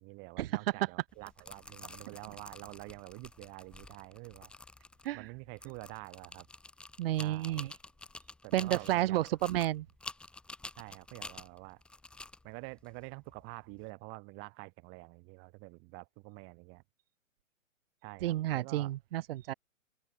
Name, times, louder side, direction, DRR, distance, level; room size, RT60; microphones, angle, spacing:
voice 1, 0.0-4.5 5.1-6.5 7.2-7.7 8.4-9.3 10.8-11.8 12.4-16.8 18.0-18.9, right 32 dB, 30° right, 1.6 m, -48 dB
sound 1, 1.1-13.9, left 2 dB, 5° left, 0.6 m, -49 dB
voice 2, 7.0-7.7 8.5-9.9 18.2-19.5, right 15 dB, 45° right, 0.7 m, -31 dB
open air
hypercardioid pair, 130°, 40 cm